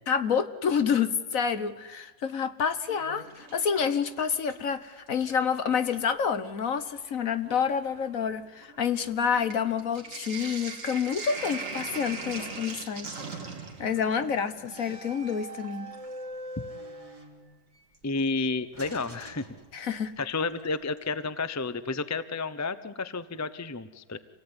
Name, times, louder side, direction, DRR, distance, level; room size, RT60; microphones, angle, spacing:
voice 1, 0.1-13.1 13.8-15.9 19.7-20.1, left 7 dB, 55° left, 11 dB, 1.5 m, -28 dB
Sink (filling or washing), 2.7-4.7 5.1-5.9 6.7-6.8 7.1-16.2 17.9-18.0 19.9-20.3 20.6-20.7 21.0-21.1, right 4 dB, 50° right, 2.7 m, -41 dB
sound 1, 11.2-13.0 13.3-13.6 14.6-17.8 18.7-20.1, right 1 dB, 20° right, 2.9 m, -44 dB
voice 2, 18.0-19.4 19.7-19.9 20.2-24.2, left 3 dB, 20° left, 14 dB, 0.5 m, -31 dB
27.0 x 18.0 x 9.7 m, 1.2 s
omnidirectional pair, 1.7 m